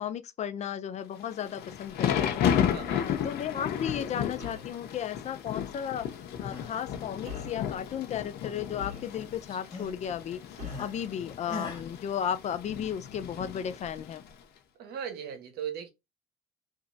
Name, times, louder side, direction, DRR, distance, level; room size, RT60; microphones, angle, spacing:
voice 1, 0.0-2.5 3.0-6.1 6.4-14.2, left 9 dB, 45° left, 0.4 m, -34 dB
Thunder / Rain, 1.3-14.3, left 9 dB, 75° left, 0.7 m, -33 dB
sound 1, 2.1-2.5 4.4-4.7 6.0-6.2 7.2-7.7 8.8-9.4 10.6-11.0, left 5 dB, 45° right, 1.7 m, -43 dB
voice 2, 2.7-3.1 14.8-15.9, right 8 dB, 70° right, 0.9 m, -38 dB
sound 2, 6.2-6.8 7.1-8.5 8.8-11.0 11.5-11.9, left 3 dB, 25° left, 1.5 m, -43 dB
3.0 x 2.5 x 2.6 m
cardioid pair, 110°, 17 cm